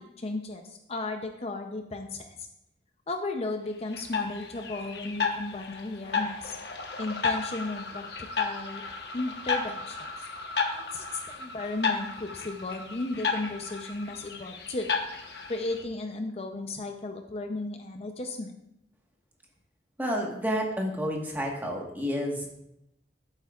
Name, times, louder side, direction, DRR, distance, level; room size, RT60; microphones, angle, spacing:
voice 1, 0.0-2.5 3.1-6.6 7.0-8.0 8.4-8.8 9.1-10.3 10.7-14.9 15.5-18.6, left 2 dB, 35° left, 5 dB, 0.6 m, -35 dB
sound 1, 3.9-15.8, left 5 dB, 65° left, 1.1 m, -33 dB
voice 2, 20.0-22.5, equal, 10° right, 0 dB, 1.4 m, -30 dB
13.0 x 7.8 x 2.4 m, 0.83 s
head